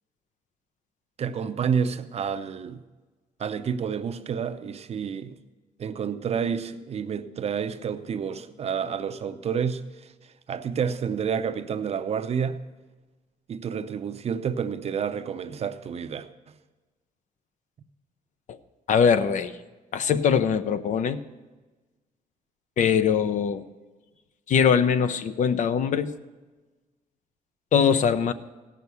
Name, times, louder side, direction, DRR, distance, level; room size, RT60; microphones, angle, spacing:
voice 1, 1.2-2.8 3.4-5.4 5.8-9.8 10.5-12.6 13.5-16.3, right 7 dB, 45° right, 0.6 m, -29 dB
voice 2, 18.9-19.5 19.9-21.2 22.8-23.6 24.5-26.1 27.7-28.3, left 7 dB, 55° left, 0.7 m, -22 dB
16.5 x 6.3 x 6.9 m
cardioid pair, 120°, 15 cm